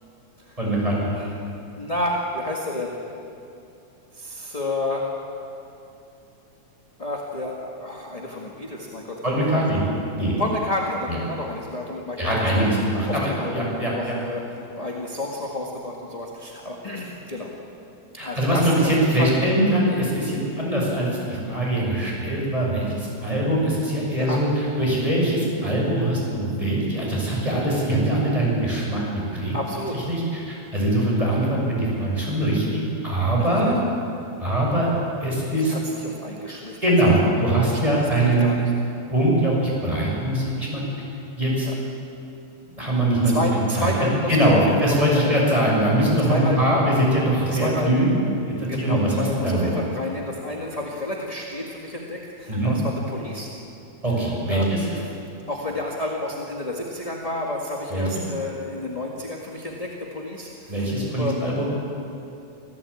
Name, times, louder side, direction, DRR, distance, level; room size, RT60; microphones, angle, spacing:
voice 1, 0.6-1.1 9.2-9.8 10.2-10.3 11.1-11.2 12.2-14.2 18.2-29.5 30.1-33.8 34.4-34.9 35.2-35.7 36.8-38.5 39.1-40.8 41.4-41.7 42.8-43.4 43.8-43.9 44.3-48.1 48.5-49.7 52.5-52.7 54.0-54.8 57.9-58.0 60.7-61.7, right 1 dB, 10° right, -4 dB, 6.8 m, -22 dB
voice 2, 1.8-3.0 4.1-5.2 7.0-9.8 10.4-12.7 13.1-17.5 18.2-19.3 24.1-24.4 29.5-30.0 33.4-33.6 35.5-36.9 37.2-38.6 41.6-41.7 43.2-45.4 46.3-46.7 47.5-48.1 48.7-53.5 54.2-55.1 55.5-61.4, left 2 dB, 15° left, -2 dB, 1.4 m, -31 dB
26.0 x 17.0 x 8.6 m, 2.7 s
omnidirectional pair, 3.4 m